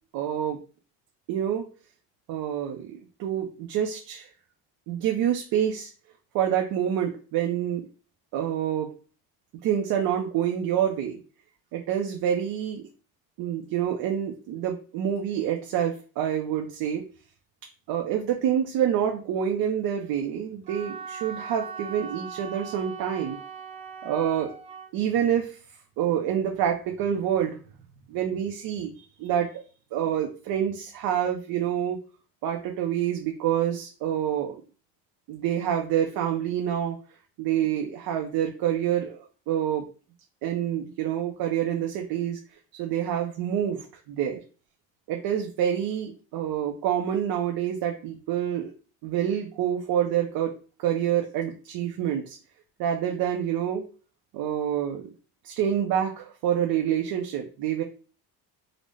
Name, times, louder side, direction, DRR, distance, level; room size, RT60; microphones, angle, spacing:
voice 1, 0.1-0.6 1.3-1.7 2.3-4.3 4.9-5.9 6.3-7.9 8.3-8.9 9.6-11.2 11.7-12.9 13.4-17.0 17.9-23.4 24.0-24.5 24.9-25.6 26.0-27.6 28.1-28.9 29.2-29.5 29.9-32.0 32.4-34.6 35.3-37.0 37.4-39.2 39.5-39.8 40.4-42.4 42.8-44.4 45.1-48.7 49.0-52.4 52.8-53.8 54.3-55.1 55.4-57.8, right 9 dB, 65° right, 2 dB, 0.6 m, -27 dB
Wind instrument woodwind instrument, 20.7-24.9, right 7 dB, 15° right, 0.3 m, -40 dB
3.8 x 2.1 x 3.2 m, 0.37 s
cardioid pair, 165°, 39 cm